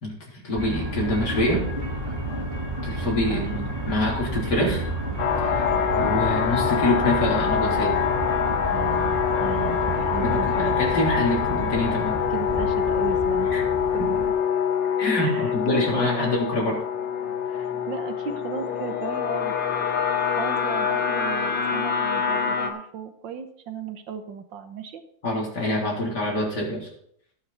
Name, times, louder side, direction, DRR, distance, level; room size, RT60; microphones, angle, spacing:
voice 1, 0.0-1.7 2.8-3.4 3.8-4.8 5.4-5.6 6.0-8.0 10.2-12.2 13.5-13.6 14.0-14.1 15.0-16.8 17.5-17.6 25.2-26.9, left 1 dB, 65° left, -3 dB, 4.3 m, -25 dB
sound 1, 0.5-14.3, right 1 dB, 15° right, 3.3 m, -30 dB
voice 2, 3.3-3.7 8.7-10.8 12.3-13.7 13.9-14.3 15.2-16.3 17.6-19.5 20.3-25.0, right 7 dB, 80° right, 8 dB, 1.8 m, -35 dB
sound 2, 5.2-22.7, left 8 dB, 90° left, 1.9 m, -25 dB
18.0 x 6.5 x 4.2 m, 0.67 s
omnidirectional pair, 2.0 m